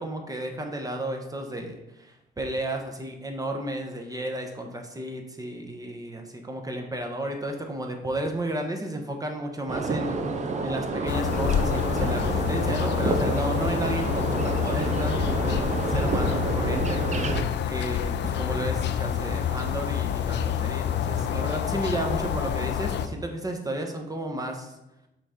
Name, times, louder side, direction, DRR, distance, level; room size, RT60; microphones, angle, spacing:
voice 1, 0.0-17.3 17.7-24.7, right 1 dB, 20° right, 3 dB, 1.0 m, -33 dB
sound 1, 9.7-17.4, right 3 dB, 35° right, 0.7 m, -29 dB
sound 2, 11.1-23.1, left 9 dB, 60° left, 0.5 m, -28 dB
5.9 x 3.7 x 4.4 m, 0.91 s
cardioid pair, 90°, 20 cm